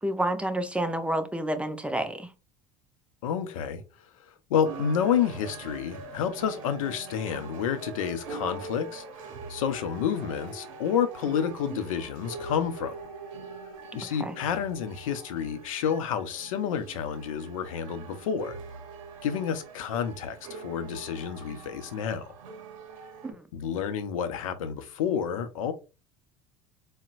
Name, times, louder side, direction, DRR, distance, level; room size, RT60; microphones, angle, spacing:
voice 1, 0.0-2.3 14.0-14.4 23.2-23.5, right 1 dB, 5° right, 0.5 m, -29 dB
voice 2, 3.2-3.8 4.5-13.0 13.9-18.6 19.2-22.3 23.5-25.7, left 8 dB, 85° left, 0.5 m, -29 dB
sound 1, 4.6-23.3, right 4 dB, 80° right, 0.7 m, -43 dB
3.9 x 2.1 x 2.4 m
hypercardioid pair, 75°, 17 cm